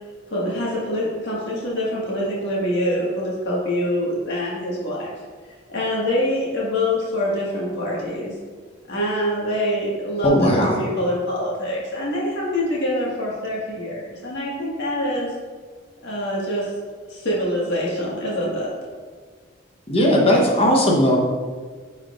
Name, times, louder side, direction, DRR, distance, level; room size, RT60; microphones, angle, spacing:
voice 1, 0.3-5.1 5.7-8.3 8.9-15.3 16.0-16.7 17.1-18.7, left 1 dB, 55° left, -5 dB, 1.8 m, -25 dB
voice 2, 10.2-10.8 19.9-21.2, equal, 30° left, -1 dB, 1.0 m, -17 dB
10.0 x 4.4 x 2.5 m, 1.5 s
head